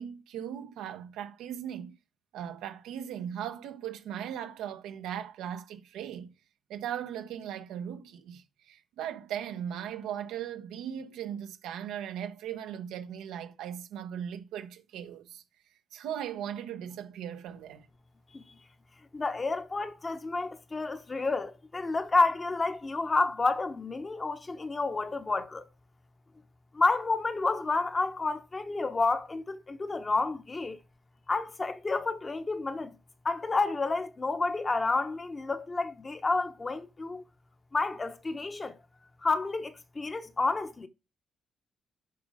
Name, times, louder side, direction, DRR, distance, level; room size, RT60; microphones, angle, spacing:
voice 1, 0.0-2.0 2.3-6.3 6.7-15.4 15.9-17.9, right 9 dB, 90° right, 1.0 m, -38 dB
voice 2, 19.1-25.7 26.7-30.8 31.3-33.0 33.2-37.2 37.7-38.8 39.2-40.9, left 3 dB, 25° left, 1.1 m, -30 dB
7.9 x 5.2 x 5.0 m
cardioid pair, 90°, 0 cm